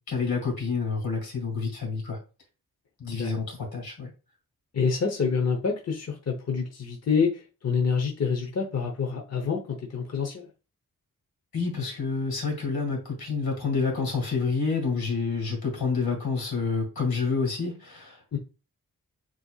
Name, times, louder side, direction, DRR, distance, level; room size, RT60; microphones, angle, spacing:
voice 1, 0.1-2.2 3.0-4.1 11.5-18.4, left 4 dB, 85° left, 1 dB, 2.2 m, -28 dB
voice 2, 4.7-10.5 18.3-18.4, left 5 dB, 45° left, 1 dB, 0.9 m, -27 dB
7.4 x 2.8 x 2.4 m, 0.32 s
wide cardioid pair, 135°, 36 cm